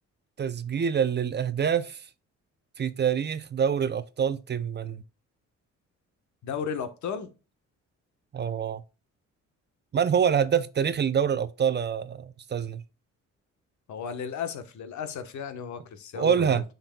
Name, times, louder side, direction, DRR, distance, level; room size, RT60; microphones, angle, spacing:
voice 1, 0.4-2.0 2.8-5.0 8.3-8.8 9.9-12.8 16.1-16.6, right 7 dB, 35° right, 0.5 m, -26 dB
voice 2, 6.4-7.3 13.9-16.6, left 7 dB, 70° left, 1.2 m, -34 dB
9.9 x 4.1 x 2.3 m
cardioid pair, 90°, 30 cm